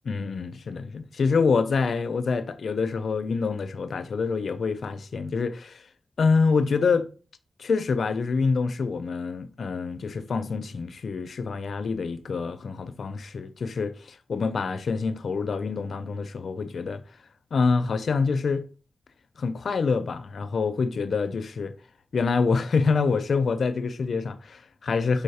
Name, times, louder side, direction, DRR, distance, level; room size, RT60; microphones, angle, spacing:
voice 1, 0.1-5.8 6.2-7.1 7.6-17.0 17.5-18.6 19.4-21.7 22.1-25.2, left 4 dB, 80° left, 0.3 m, -26 dB
4.5 x 3.2 x 2.6 m
wide cardioid pair, 85°, 0 cm